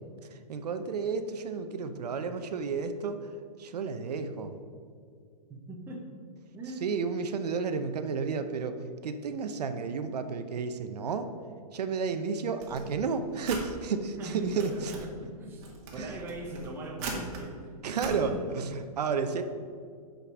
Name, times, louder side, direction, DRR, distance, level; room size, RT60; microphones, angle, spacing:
voice 1, 0.3-3.3 3.6-4.6 6.8-11.3 11.7-14.9 16.0-16.2 17.8-19.4, right 5 dB, 75° right, 8 dB, 0.7 m, -32 dB
voice 2, 5.5-6.1 6.5-6.8 14.2-15.6 15.9-17.7 18.0-18.4, right 1 dB, 10° right, -1 dB, 0.9 m, -39 dB
sound 1, 12.6-13.7 14.3-15.1 15.6-17.4 17.9-18.2, right 3 dB, 30° right, 1.4 m, -40 dB
7.0 x 5.2 x 6.1 m, 2.2 s
hypercardioid pair, 160°, 21 cm